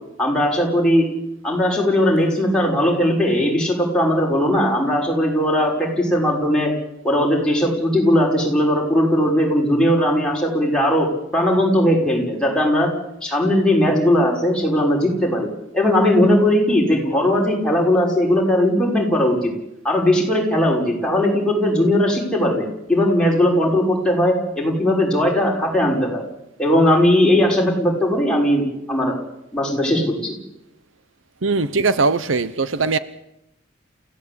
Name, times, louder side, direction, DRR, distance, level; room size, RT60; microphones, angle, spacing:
voice 1, 0.2-1.1 1.4-6.7 7.0-11.1 11.3-12.9 13.2-19.5 19.8-26.2 26.6-29.2 29.5-30.3, left 1 dB, 5° left, 6.2 m, -18 dB
voice 2, 31.4-33.0, right 4 dB, 70° right, 0.9 m, -20 dB
29.0 x 16.0 x 8.8 m
head